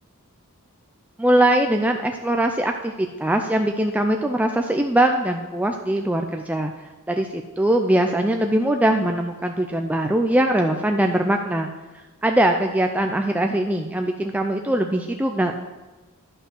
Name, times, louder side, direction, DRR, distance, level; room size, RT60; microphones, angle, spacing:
voice 1, 1.2-6.7 7.1-11.7 12.2-15.6, right 1 dB, 5° right, 4 dB, 0.4 m, -21 dB
11.0 x 5.5 x 6.1 m, 1.2 s
head